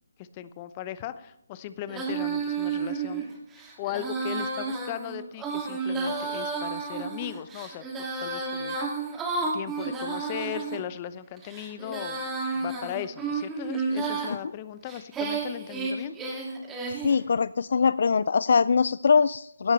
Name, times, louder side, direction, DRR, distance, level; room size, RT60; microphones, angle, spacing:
voice 1, 0.2-3.2 3.8-7.8 8.2-8.8 9.5-16.2, left 11 dB, 25° left, 14 dB, 0.8 m, -37 dB
Female singing, 1.9-10.8 11.4-14.3 14.9-17.2, right 4 dB, 10° right, 2.4 m, -31 dB
voice 2, 17.0-19.7, left 5 dB, 55° left, 18 dB, 0.3 m, -22 dB
17.0 x 12.5 x 3.3 m, 0.82 s
figure-of-eight pair, 150°, 0 cm